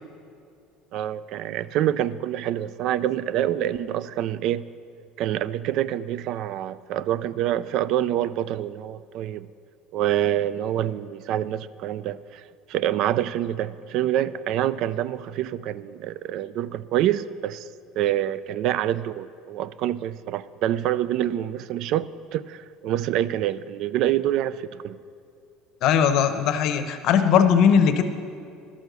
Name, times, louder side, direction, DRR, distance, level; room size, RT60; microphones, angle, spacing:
voice 1, 0.9-4.6 5.2-9.5 9.9-17.7 18.0-22.0 22.3-24.9, right 12 dB, 60° right, 17 dB, 0.3 m, -26 dB
voice 2, 25.8-28.0, left 7 dB, 60° left, 9 dB, 0.8 m, -19 dB
12.0 x 6.3 x 6.7 m, 2.5 s
cardioid pair, 125°, 0 cm